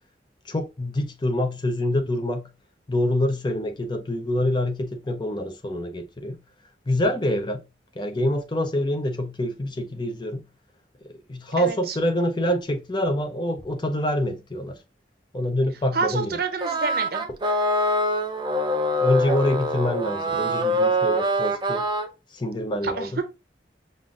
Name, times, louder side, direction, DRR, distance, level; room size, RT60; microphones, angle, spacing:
voice 1, 0.5-2.5 2.9-6.4 6.9-7.6 8.0-10.4 11.1-14.8 15.3-16.4 19.0-21.9 22.3-23.2, left 1 dB, 25° left, 0.6 m, -26 dB
voice 2, 11.6-11.9 15.9-17.2 22.8-23.2, right 4 dB, 60° right, 0.7 m, -28 dB
sound 1, 16.6-22.1, equal, 25° right, 0.5 m, -24 dB
5.5 x 2.5 x 2.3 m
head